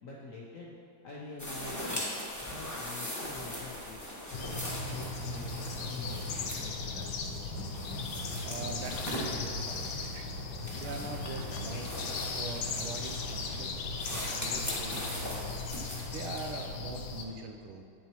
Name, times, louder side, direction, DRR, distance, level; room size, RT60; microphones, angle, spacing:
voice 1, 0.0-0.7 1.0-2.1 2.5-4.0 4.5-7.3, left 3 dB, 65° left, -4 dB, 0.8 m, -46 dB
sound 1, 1.4-16.7, left 1 dB, 15° left, 0.7 m, -40 dB
sound 2, 4.3-17.2, left 3 dB, 85° left, 1.6 m, -37 dB
sound 3, 7.5-8.2 8.5-9.6 10.6-12.1 13.2-14.0, equal, 55° right, 2.4 m, -50 dB
voice 2, 8.4-10.5 10.8-11.9 12.4-15.5 16.1-17.9, right 4 dB, 90° right, 5 dB, 1.5 m, -42 dB
8.8 x 7.1 x 3.0 m, 2.7 s
omnidirectional pair, 2.3 m